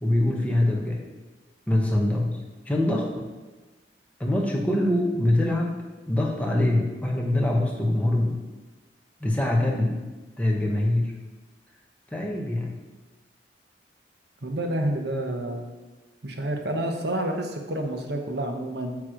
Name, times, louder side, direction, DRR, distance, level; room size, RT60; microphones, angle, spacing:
voice 1, 0.0-1.0 1.7-2.4 2.6-3.3 4.2-8.4 9.2-10.0 10.4-11.1 12.1-12.8, left 1 dB, 10° left, -1 dB, 1.1 m, -24 dB
voice 2, 14.4-15.6 16.2-19.0, right 1 dB, 65° right, 3 dB, 1.1 m, -29 dB
9.5 x 3.3 x 6.4 m, 1.2 s
head